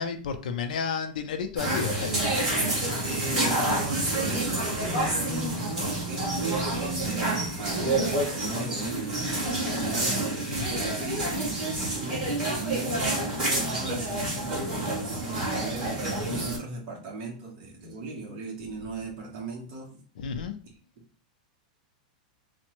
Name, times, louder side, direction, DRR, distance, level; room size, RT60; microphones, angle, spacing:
voice 1, 0.0-2.2 20.2-20.6, left 6 dB, 80° left, 7 dB, 0.5 m, -31 dB
sound 1, 1.6-16.6, right 1 dB, 10° right, 1.4 m, -28 dB
voice 2, 3.0-20.0 20.6-20.8, right 3 dB, 35° right, -1 dB, 0.9 m, -38 dB
3.4 x 2.0 x 3.0 m, 0.40 s
supercardioid pair, 175°, 4 cm